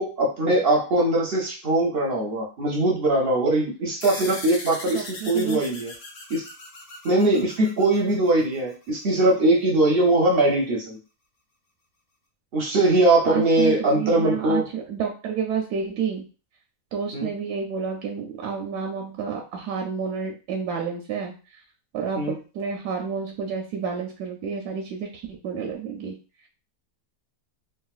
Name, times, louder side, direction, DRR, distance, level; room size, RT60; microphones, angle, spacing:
voice 1, 0.0-5.9 6.3-6.4 7.0-11.0 12.5-14.6 17.1-17.3 22.2-22.4, right 2 dB, 55° right, 0 dB, 0.6 m, -21 dB
sound 1, 4.0-8.9, left 2 dB, 45° left, 0.8 m, -39 dB
voice 2, 4.9-5.6 13.2-16.2 16.9-21.4 21.9-26.2, right 6 dB, 85° right, 1 dB, 1.1 m, -30 dB
3.8 x 2.2 x 2.3 m, 0.34 s
omnidirectional pair, 1.7 m